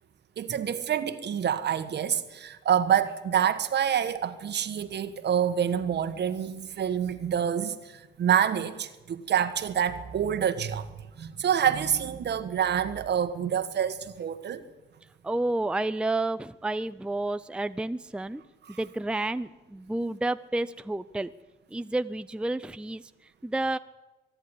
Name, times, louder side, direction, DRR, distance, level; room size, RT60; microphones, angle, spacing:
voice 1, 0.4-10.9 11.2-14.6 18.7-18.8, right 9 dB, 60° right, 1.6 m, -27 dB
voice 2, 15.2-18.4 18.7-21.3 21.7-23.8, right 2 dB, 5° right, 0.6 m, -30 dB
24.0 x 11.0 x 9.9 m
cardioid pair, 90°, 20 cm